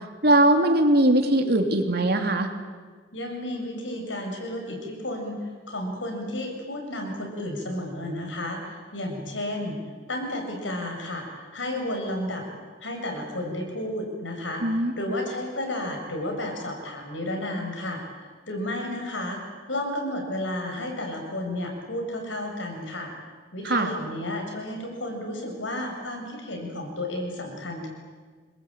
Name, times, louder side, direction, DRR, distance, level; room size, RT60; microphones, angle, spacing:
voice 1, 0.2-2.5 14.6-14.9 23.6-23.9, right 1 dB, 55° right, 4 dB, 3.1 m, -20 dB
voice 2, 3.1-9.8 10.1-12.4 12.8-23.1 23.5-27.9, left 1 dB, 80° left, 3 dB, 7.5 m, -32 dB
27.0 x 21.5 x 9.0 m, 1.5 s
head